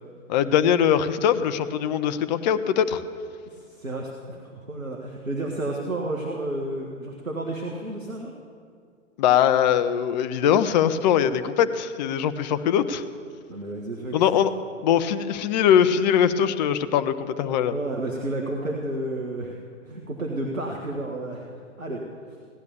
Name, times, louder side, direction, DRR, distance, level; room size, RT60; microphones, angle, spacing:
voice 1, 0.3-3.0 9.2-13.0 14.1-14.5 14.8-17.8, left 9 dB, 35° left, 11 dB, 0.8 m, -21 dB
voice 2, 3.5-8.3 13.5-14.2 17.7-19.6 19.9-22.0, right 1 dB, 85° right, 0 dB, 1.7 m, -31 dB
17.0 x 10.5 x 7.1 m, 2.2 s
figure-of-eight pair, 110°, 39 cm